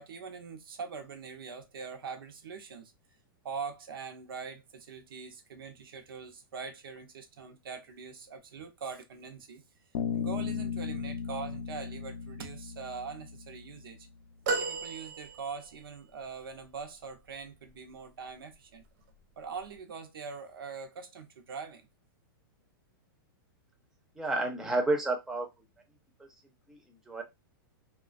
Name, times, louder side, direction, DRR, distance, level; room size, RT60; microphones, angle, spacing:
voice 1, 0.0-2.9 3.4-9.6 10.1-14.1 14.5-18.8 19.4-21.9, right 5 dB, 90° right, 0.6 m, -42 dB
Bass guitar, 9.9-13.8, left 7 dB, 75° left, 0.5 m, -36 dB
sound 1, 14.5-15.9 16.6-16.7, right 3 dB, 50° right, 0.6 m, -34 dB
voice 2, 24.2-25.5 26.2-26.3 26.7-26.8 27.1-27.2, right 2 dB, 5° right, 0.4 m, -30 dB
2.4 x 2.2 x 2.4 m
hypercardioid pair, 155°, 12 cm